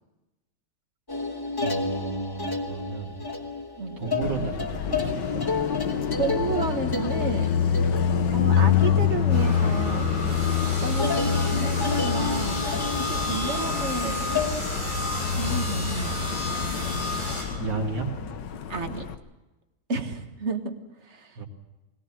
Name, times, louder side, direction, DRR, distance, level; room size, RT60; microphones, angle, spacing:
sound 1, 1.1-9.9 10.2-10.6 11.0-14.6, left 4 dB, 15° left, 1.0 m, -31 dB
voice 1, 1.6-3.3 4.0-5.4 13.1-13.3 16.9-17.1 17.6-18.1 21.4-21.5, right 4 dB, 85° right, -1 dB, 3.0 m, -33 dB
Car passing by, 4.2-19.2, left 7 dB, 85° left, 1.7 m, -27 dB
voice 2, 6.2-7.8 8.3-12.7 13.1-14.4 15.4-16.4 18.7-19.1 19.9-20.7 21.0-21.4, right 4 dB, 40° right, 6 dB, 1.8 m, -32 dB
sound 2, 9.3-17.4, left 1 dB, 60° left, 7.6 m, -31 dB
21.0 x 18.5 x 7.5 m, 1.0 s
omnidirectional pair, 1.9 m